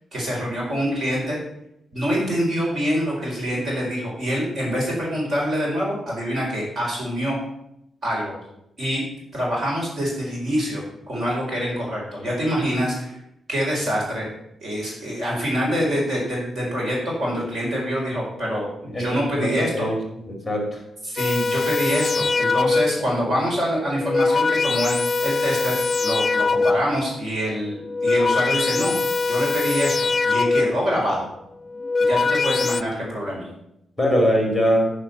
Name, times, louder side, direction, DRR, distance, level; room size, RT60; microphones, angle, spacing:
voice 1, 0.1-1.4 1.9-7.4 8.0-8.3 8.8-9.0 9.3-10.8 11.1-13.2 13.5-14.3 14.6-19.9 21.0-27.8 28.0-28.9 29.3-31.3 32.0-33.5, equal, 45° right, -3 dB, 4.5 m, -25 dB
voice 2, 19.4-20.0 20.3-20.8 34.0-34.9, equal, ahead, 1 dB, 2.5 m, -21 dB
sound 1, 21.2-23.1 23.9-27.0 27.8-30.9 31.7-32.8, left 3 dB, 30° left, 0.3 m, -22 dB
10.0 x 5.1 x 7.0 m, 0.82 s
wide cardioid pair, 170°, 0 cm